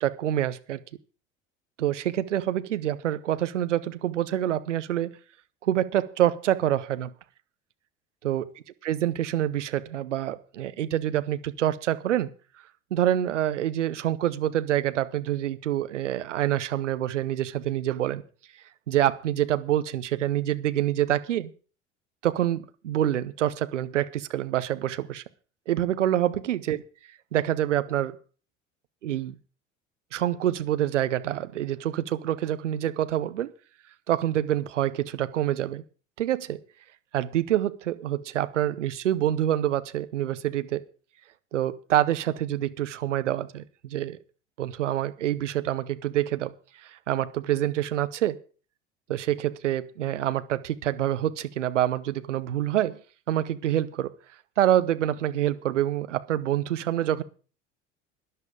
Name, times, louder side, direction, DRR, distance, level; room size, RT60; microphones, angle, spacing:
voice 1, 0.0-0.8 1.8-5.1 5.6-7.1 8.2-8.4 8.8-12.3 12.9-18.2 18.9-21.5 22.2-25.2 25.7-26.8 27.3-28.2 29.0-29.3 30.1-33.5 34.1-35.8 36.2-36.6 37.1-40.8 41.5-44.2 44.6-46.5 46.8-48.4 49.1-53.0 53.3-54.1 54.6-57.2, right 12 dB, 75° right, 13 dB, 0.9 m, -26 dB
12.5 x 11.0 x 5.0 m, 0.38 s
figure-of-eight pair, 65°, 37 cm